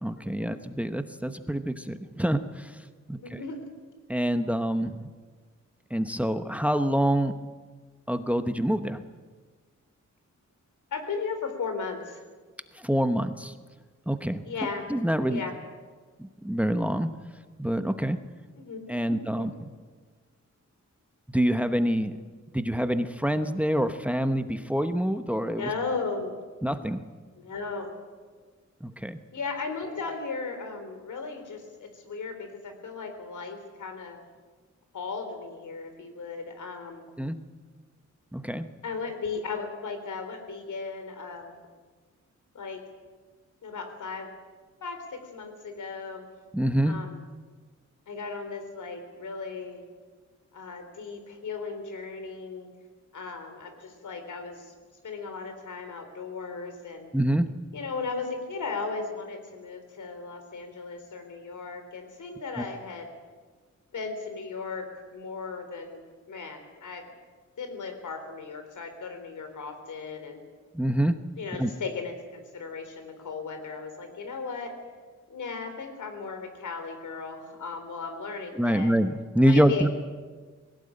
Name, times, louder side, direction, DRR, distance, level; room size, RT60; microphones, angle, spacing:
voice 1, 0.0-3.4 4.1-5.1 5.9-7.3 8.1-9.0 12.7-13.5 14.1-14.4 14.9-15.4 16.2-17.1 17.6-18.2 18.9-19.7 21.3-22.1 22.5-25.7 26.6-27.0 28.8-29.2 37.2-37.4 38.3-38.7 46.5-47.0 57.1-57.5 62.6-62.7 70.7-71.2 71.6-71.7 78.5-79.9, equal, 5° right, 9 dB, 0.9 m, -26 dB
voice 2, 3.2-3.6 10.9-12.2 14.5-14.9 15.3-15.5 18.6-18.8 19.1-19.5 25.5-26.4 27.4-27.9 29.3-34.2 34.9-37.1 38.8-41.7 42.5-42.8 43.6-44.3 44.8-46.2 46.8-47.2 48.1-49.8 50.5-52.7 53.1-54.7 55.0-57.1 57.7-63.1 63.9-66.0 66.3-67.0 67.6-70.4 71.4-74.7 75.3-78.9 79.4-79.9, left 4 dB, 85° left, 6 dB, 3.9 m, -36 dB
20.5 x 17.5 x 8.8 m, 1.5 s
wide cardioid pair, 125°, 30 cm